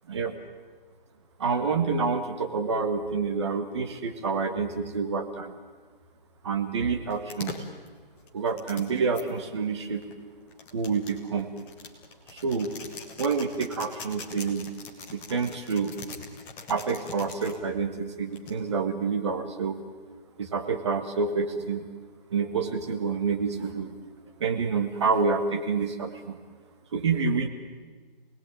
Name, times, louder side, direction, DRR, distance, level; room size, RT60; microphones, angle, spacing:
voice 1, 1.4-5.5 6.4-7.6 8.3-10.0 10.7-11.5 12.3-12.7 13.2-14.7 15.1-15.9 16.7-19.8 20.4-21.8 22.3-24.0 24.4-26.4 26.9-27.5, right 5 dB, 30° right, 6 dB, 1.7 m, -28 dB
sound 1, 7.1-9.2 10.0-17.6 18.3-18.8, left 4 dB, 5° left, 1.1 m, -42 dB
28.5 x 19.5 x 9.1 m, 1.4 s
figure-of-eight pair, 160°, 29 cm